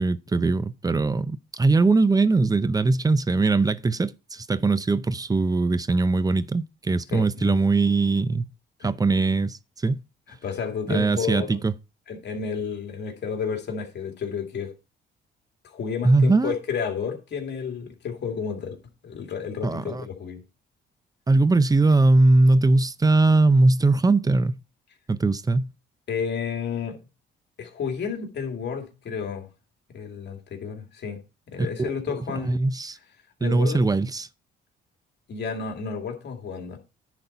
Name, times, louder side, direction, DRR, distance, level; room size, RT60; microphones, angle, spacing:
voice 1, 0.0-8.5 8.8-10.0 10.9-11.7 16.0-16.5 19.6-20.0 21.3-24.6 25.1-25.7 31.6-33.0 33.4-34.3, right 3 dB, 20° right, 0.6 m, -21 dB
voice 2, 7.1-7.6 8.8-8.9 10.4-11.6 12.1-14.7 15.6-18.8 19.0-20.4 26.1-27.0 27.6-29.5 29.9-31.2 31.5-32.6 33.4-33.8 35.3-36.8, left 6 dB, 60° left, 2.4 m, -31 dB
10.0 x 4.2 x 5.5 m
cardioid pair, 90°, 20 cm